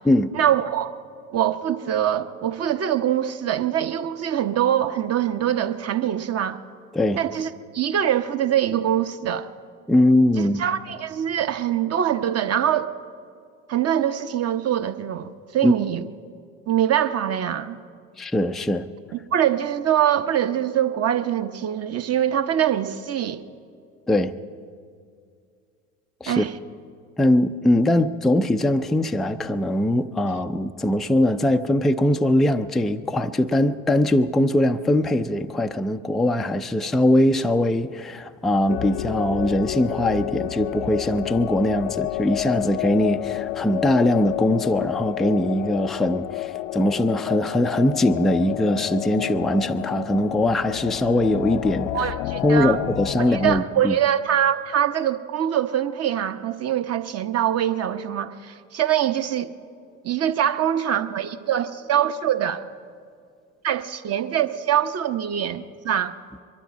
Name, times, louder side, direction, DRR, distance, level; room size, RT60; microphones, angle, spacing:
voice 1, 0.3-0.9 1.3-6.6 7.1-9.5 10.6-12.9 13.7-16.1 16.7-17.8 19.3-23.4 26.3-26.5 51.9-52.8 53.2-59.5 60.0-62.6 63.6-66.1, right 10 dB, 35° right, 0.9 m, -23 dB
voice 2, 9.9-10.6 15.6-15.7 18.2-18.9 24.1-24.4 26.2-26.5 27.2-51.9 52.4-53.9, left 1 dB, ahead, 0.3 m, -21 dB
sound 1, 38.7-53.6, left 15 dB, 65° left, 0.5 m, -30 dB
22.5 x 12.0 x 5.2 m
hypercardioid pair, 75°, 42 cm